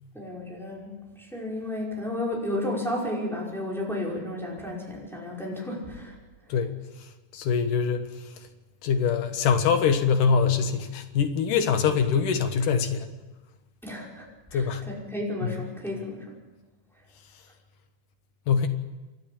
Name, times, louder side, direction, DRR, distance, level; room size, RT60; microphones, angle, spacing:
voice 1, 0.1-6.2 13.8-16.2, left 1 dB, ahead, -4 dB, 5.2 m, -33 dB
voice 2, 7.3-8.1 8.8-13.2 14.5-14.8 15.4-15.5 18.5-18.7, left 6 dB, 85° left, 7 dB, 3.0 m, -23 dB
27.5 x 12.5 x 8.6 m, 1.2 s
omnidirectional pair, 3.7 m